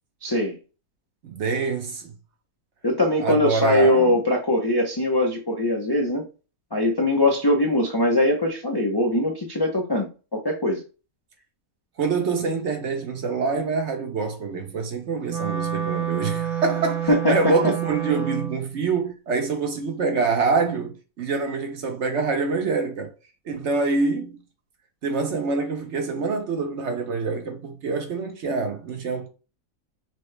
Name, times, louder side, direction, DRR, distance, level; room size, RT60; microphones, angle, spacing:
voice 1, 0.2-0.6 2.8-6.3 6.7-10.8 17.1-17.4 17.6-17.7, left 1 dB, 40° left, 0.3 m, -21 dB
voice 2, 1.2-2.1 3.2-4.2 12.0-23.1 23.5-24.4 25.0-29.3, right 4 dB, 55° right, 1.1 m, -25 dB
Wind instrument woodwind instrument, 15.3-18.7, right 9 dB, 90° right, 1.7 m, -28 dB
6.0 x 2.1 x 3.2 m
omnidirectional pair, 1.5 m